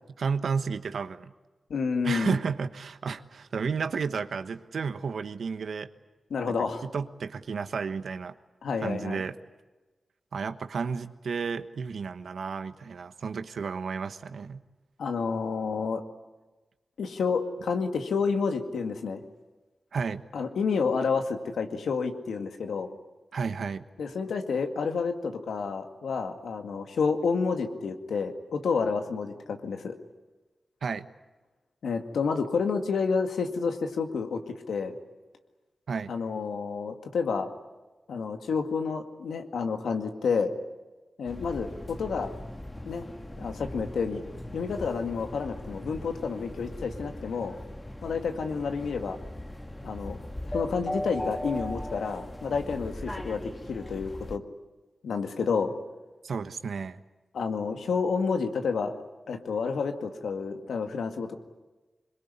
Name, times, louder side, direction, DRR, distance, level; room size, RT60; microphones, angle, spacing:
voice 1, 0.2-1.3 2.0-5.9 6.5-6.6 6.8-8.3 8.8-9.3 10.3-14.6 19.9-20.2 23.3-23.8 30.8-31.1 35.9-36.1 56.2-57.0, right 5 dB, 80° right, 11 dB, 1.2 m, -32 dB
voice 2, 1.7-2.4 6.3-6.8 8.6-9.2 15.0-16.0 17.0-19.2 20.3-22.9 24.0-30.0 31.8-34.9 36.1-37.5 38.1-40.5 41.2-42.3 42.8-43.1 43.4-44.2 44.5-47.6 48.0-49.2 49.8-50.2 50.4-54.4 55.0-55.7 57.3-58.9 59.3-61.4, left 5 dB, 90° left, 5 dB, 2.1 m, -29 dB
sound 1, 41.3-54.4, left 1 dB, 20° left, 1.6 m, -39 dB
23.0 x 22.0 x 9.9 m, 1.2 s
cardioid pair, 50°, 0 cm